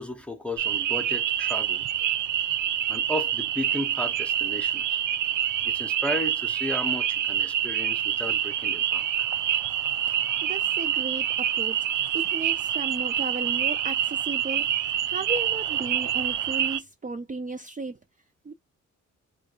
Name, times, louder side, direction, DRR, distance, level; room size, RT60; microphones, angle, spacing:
voice 1, 0.0-1.8 2.9-5.0 5.6-9.3, left 1 dB, 5° left, 0.9 m, -34 dB
sound 1, 0.6-16.8, right 10 dB, 75° right, 0.5 m, -26 dB
voice 2, 10.1-11.8 12.1-18.0 18.4-18.5, right 3 dB, 25° right, 0.6 m, -35 dB
4.6 x 2.4 x 2.5 m
cardioid pair, 110°, 30 cm